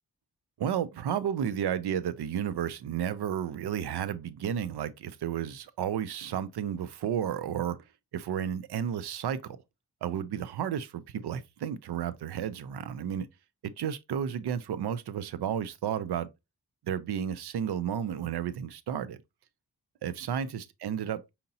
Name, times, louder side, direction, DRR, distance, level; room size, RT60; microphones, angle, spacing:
voice 1, 0.6-7.8 8.1-9.6 10.0-13.3 13.6-16.3 16.8-19.2 20.0-21.3, right 9 dB, 80° right, 0.5 m, -32 dB
5.1 x 2.8 x 2.7 m
cardioid pair, 45°, 39 cm